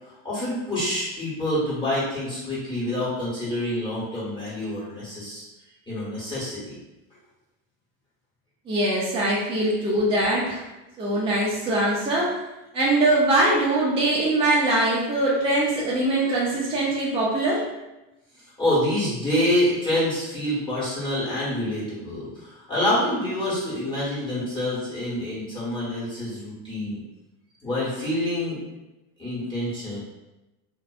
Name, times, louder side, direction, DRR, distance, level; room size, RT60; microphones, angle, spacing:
voice 1, 0.0-5.4 5.9-6.8 18.6-27.0 27.6-28.6 29.2-30.0, left 1 dB, 15° left, -10 dB, 1.1 m, -27 dB
voice 2, 8.7-10.6 11.0-12.3 12.7-17.6, right 1 dB, 15° right, -6 dB, 0.4 m, -22 dB
2.5 x 2.1 x 2.3 m, 1.0 s
supercardioid pair, 115°, 37 cm